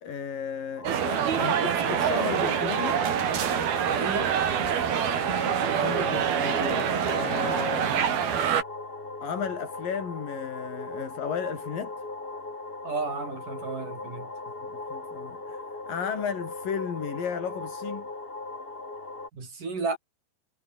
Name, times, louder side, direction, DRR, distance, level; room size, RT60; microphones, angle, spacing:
voice 1, 0.0-3.0 5.8-8.3 9.2-12.0 14.6-18.1, left 7 dB, 65° left, 5.0 m, -34 dB
sound 1, 0.8-19.3, left 2 dB, 15° left, 2.6 m, -38 dB
sound 2, 0.8-8.6, right 8 dB, 75° right, 4.7 m, -26 dB
voice 2, 3.9-4.4 12.8-14.3 19.3-20.0, right 4 dB, 55° right, 9.7 m, -32 dB
omnidirectional pair, 4.4 m